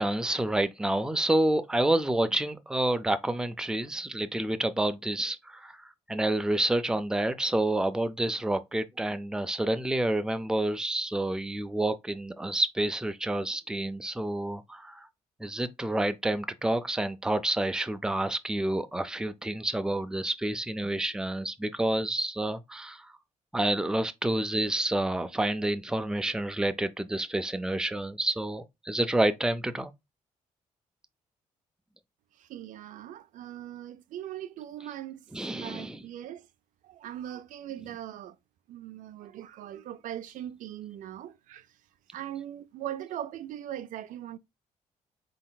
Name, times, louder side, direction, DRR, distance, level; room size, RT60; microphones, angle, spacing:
voice 1, 0.0-5.8 6.1-15.1 15.4-23.0 23.5-29.9 35.3-36.0, right 1 dB, 5° right, 0.4 m, -29 dB
voice 2, 32.5-35.2 35.5-36.4 36.8-38.3 38.7-41.6 42.1-44.4, right 11 dB, 75° right, 0.4 m, -40 dB
4.2 x 3.8 x 2.3 m
cardioid pair, 80°, 13 cm